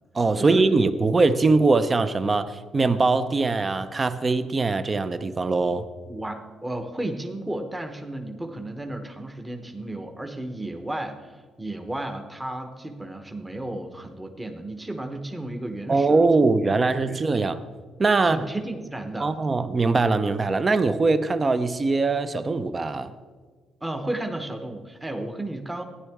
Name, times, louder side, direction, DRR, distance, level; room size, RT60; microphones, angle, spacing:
voice 1, 0.1-5.8 15.9-17.6 18.0-18.4 19.2-23.1, right 3 dB, 30° right, 12 dB, 0.6 m, -22 dB
voice 2, 6.1-17.2 18.2-19.3 23.8-25.8, right 1 dB, 15° right, 5 dB, 1.0 m, -33 dB
14.0 x 9.8 x 3.6 m, 1.5 s
cardioid pair, 90°, 0 cm